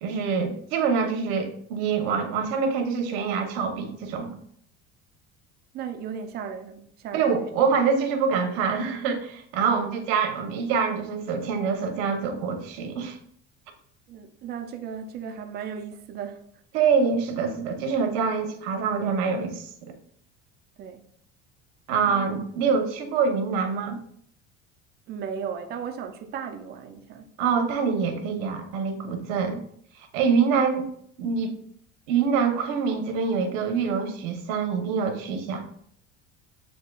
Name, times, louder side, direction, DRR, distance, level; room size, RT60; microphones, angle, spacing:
voice 1, 0.0-4.4 7.1-13.2 16.7-19.9 21.9-24.0 27.4-29.6 30.0-30.9 31.2-31.6 32.1-35.6, right 5 dB, 85° right, 0.9 m, -25 dB
voice 2, 5.7-7.5 9.7-9.9 14.1-16.4 20.8-21.0 22.1-22.3 25.1-27.3, right 7 dB, 35° right, 0.4 m, -36 dB
7.9 x 2.8 x 2.3 m
cardioid pair, 165°, 29 cm